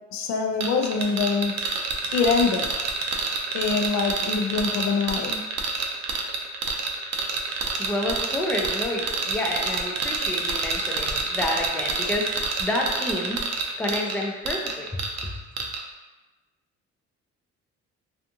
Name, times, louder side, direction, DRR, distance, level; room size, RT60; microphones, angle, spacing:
voice 1, 0.1-1.5 2.1-2.7 3.5-5.4, left 5 dB, 65° left, 3 dB, 0.4 m, -24 dB
sound 1, 0.6-15.3 15.6-15.8, right 4 dB, 60° right, 0.5 m, -28 dB
voice 2, 7.8-13.4 13.8-15.0, left 1 dB, 5° left, -1 dB, 0.3 m, -29 dB
2.5 x 2.5 x 2.6 m, 1.1 s
cardioid pair, 90°, 30 cm